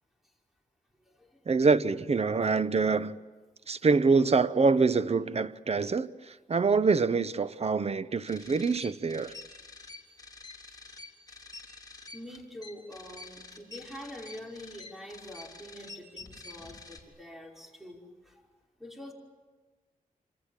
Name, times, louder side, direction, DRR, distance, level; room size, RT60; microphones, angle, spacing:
voice 1, 1.5-3.2 3.7-6.1 6.5-9.3, right 4 dB, 45° right, 0.9 m, -25 dB
sound 1, 8.3-17.0, left 3 dB, 25° left, 4.0 m, -47 dB
voice 2, 12.1-18.0 18.8-19.1, equal, ahead, 5.6 m, -45 dB
27.5 x 27.0 x 7.4 m
wide cardioid pair, 110°, 15 cm